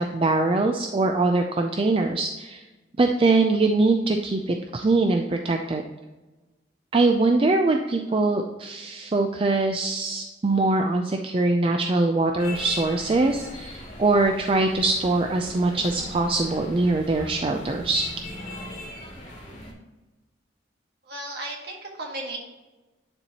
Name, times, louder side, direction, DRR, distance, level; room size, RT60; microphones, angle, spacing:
voice 1, 0.0-2.6 3.0-5.8 6.9-18.0, right 3 dB, 30° right, 4 dB, 0.4 m, -22 dB
sound 1, 12.4-19.7, left 1 dB, 40° left, 2.1 m, -39 dB
voice 2, 21.1-22.4, right 2 dB, 60° right, 0 dB, 1.6 m, -34 dB
9.6 x 4.5 x 2.9 m, 1.1 s
head